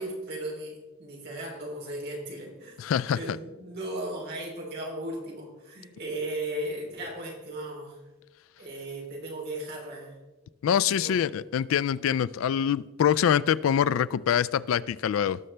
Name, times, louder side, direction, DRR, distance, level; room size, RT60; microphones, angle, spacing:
voice 1, 0.0-2.8 3.1-8.0 8.6-10.1 10.7-11.3, right 1 dB, 50° right, -2 dB, 3.2 m, -36 dB
voice 2, 2.8-3.2 10.6-15.4, left 8 dB, 75° left, 18 dB, 0.3 m, -25 dB
18.5 x 6.5 x 3.3 m, 1.2 s
head